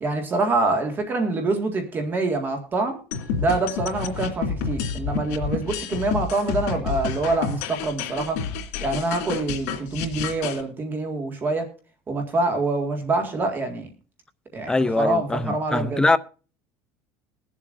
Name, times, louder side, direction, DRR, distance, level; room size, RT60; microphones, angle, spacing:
voice 1, 0.0-3.0 3.3-8.4 8.8-11.7 12.1-13.9 14.5-16.0, right 2 dB, 25° right, 1.9 m, -25 dB
sound 1, 3.1-10.6, left 6 dB, 85° left, 2.5 m, -29 dB
voice 2, 14.7-16.2, left 2 dB, 10° left, 0.5 m, -22 dB
22.0 x 7.4 x 2.6 m
cardioid pair, 145°, 8 cm